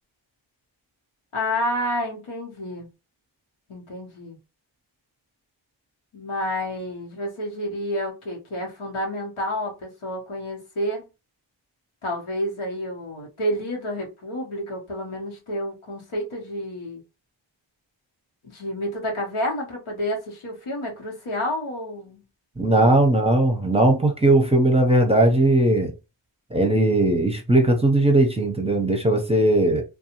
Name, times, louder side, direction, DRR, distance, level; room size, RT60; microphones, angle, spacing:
voice 1, 1.3-2.9 3.7-4.4 6.1-11.1 12.0-17.0 18.4-22.2 22.7-22.9, equal, 85° left, 1.1 m, -29 dB
voice 2, 22.6-25.9 26.5-29.8, right 1 dB, 15° right, 0.6 m, -18 dB
2.6 x 2.3 x 2.9 m
wide cardioid pair, 55°, 48 cm